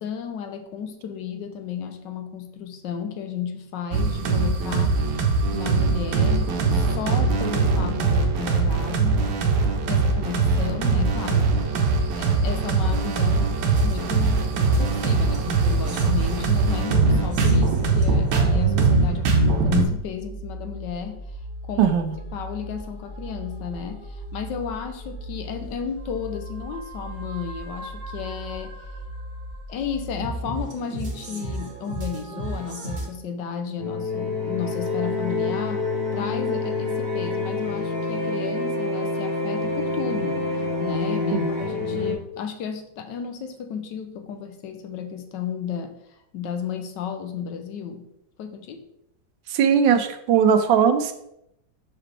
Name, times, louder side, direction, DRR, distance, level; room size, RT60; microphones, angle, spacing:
voice 1, 0.0-5.0 5.5-9.2 9.9-21.2 21.6-21.9 22.3-28.8 29.7-40.5 40.8-46.0 46.3-48.1 48.4-48.8, left 7 dB, 75° left, 6 dB, 1.3 m, -33 dB
sound 1, 3.9-19.8, right 4 dB, 70° right, 1.4 m, -21 dB
sound 2, 13.6-33.1, right 1 dB, 35° right, 1.0 m, -36 dB
voice 2, 21.8-22.2 41.3-41.5 49.5-51.1, right 7 dB, 85° right, 9 dB, 1.3 m, -19 dB
sound 3, 33.8-42.1, left 3 dB, 40° left, 1.1 m, -27 dB
5.8 x 5.0 x 3.2 m, 0.79 s
omnidirectional pair, 2.0 m